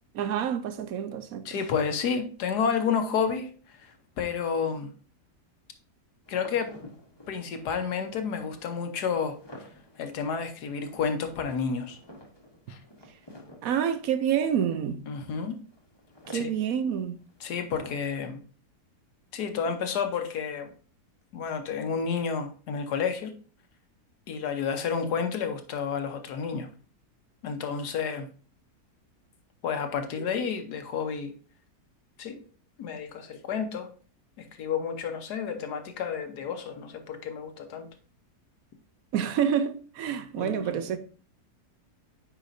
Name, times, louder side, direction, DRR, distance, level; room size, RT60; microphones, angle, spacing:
voice 1, 0.2-1.5 13.6-15.0 16.3-17.2 39.1-41.0, right 8 dB, 65° right, 1.0 m, -28 dB
voice 2, 1.4-4.9 6.3-6.8 7.3-9.4 10.0-12.0 12.7-12.8 15.1-15.6 16.3-16.5 17.4-18.4 19.3-20.7 21.3-23.3 24.3-26.7 27.4-28.3 29.6-31.3 32.2-32.4 32.8-33.9 34.4-37.9 40.4-40.9, left 6 dB, 80° left, 1.4 m, -30 dB
sound 1, 6.3-18.0, left 1 dB, 20° left, 1.0 m, -51 dB
8.9 x 4.9 x 2.6 m
omnidirectional pair, 1.7 m